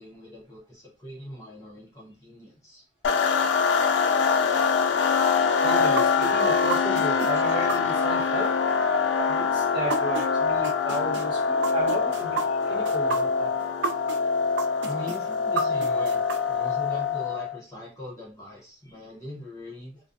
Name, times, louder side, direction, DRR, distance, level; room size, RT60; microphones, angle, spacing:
voice 1, 0.0-2.8 14.8-16.2 16.5-20.0, left 1 dB, 20° left, 0.6 m, -40 dB
sound 1, 3.0-17.6, left 5 dB, 75° left, 0.3 m, -24 dB
voice 2, 5.6-8.5 9.3-13.5, right 1 dB, 25° right, 1.1 m, -34 dB
sound 2, 6.0-10.3 10.6-14.2 14.6-16.4, right 5 dB, 70° right, 0.3 m, -31 dB
2.4 x 2.1 x 2.5 m
head